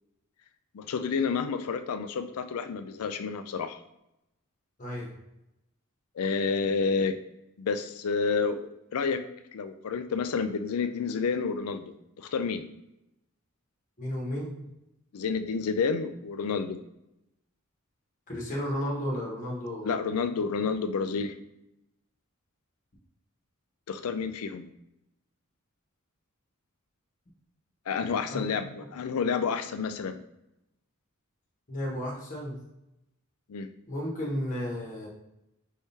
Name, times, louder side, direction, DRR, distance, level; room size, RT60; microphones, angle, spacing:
voice 1, 0.7-3.8 6.2-7.2 7.6-8.6 8.9-9.2 9.5-12.7 15.1-16.8 19.8-21.4 23.9-24.7 27.9-30.2 33.5-33.7, left 5 dB, 90° left, 10 dB, 0.4 m, -29 dB
voice 2, 4.8-5.1 14.0-14.6 18.3-19.9 28.3-28.4 31.7-32.6 33.9-35.1, equal, 35° left, -3 dB, 1.1 m, -33 dB
4.5 x 3.6 x 2.7 m, 0.87 s
head